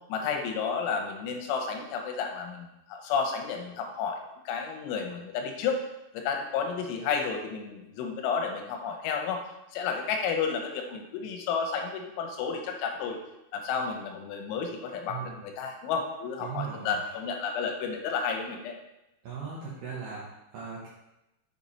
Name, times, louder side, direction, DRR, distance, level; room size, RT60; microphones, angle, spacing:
voice 1, 0.1-4.2 4.5-5.8 6.1-9.4 9.7-13.2 13.5-18.8, left 6 dB, 85° left, 3 dB, 3.2 m, -31 dB
voice 2, 15.1-15.5 16.4-16.9 19.2-20.9, right 6 dB, 80° right, -5 dB, 1.9 m, -38 dB
6.9 x 5.4 x 4.1 m, 0.93 s
omnidirectional pair, 5.5 m